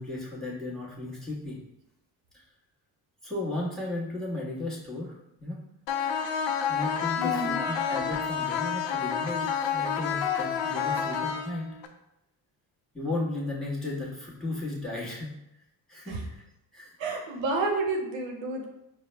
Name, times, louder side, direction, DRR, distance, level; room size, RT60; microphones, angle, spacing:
voice 1, 0.0-1.6 2.3-2.4 3.2-5.6 6.7-11.7 12.9-15.3 15.9-16.4 16.7-16.9, left 2 dB, ahead, -4 dB, 1.4 m, -35 dB
sound 1, 5.9-11.9, left 7 dB, 70° left, 0.6 m, -29 dB
voice 2, 7.2-7.6 16.1-16.3 17.0-18.7, right 2 dB, 70° right, 1 dB, 0.8 m, -30 dB
4.5 x 2.2 x 3.3 m, 0.85 s
supercardioid pair, 60°, 46 cm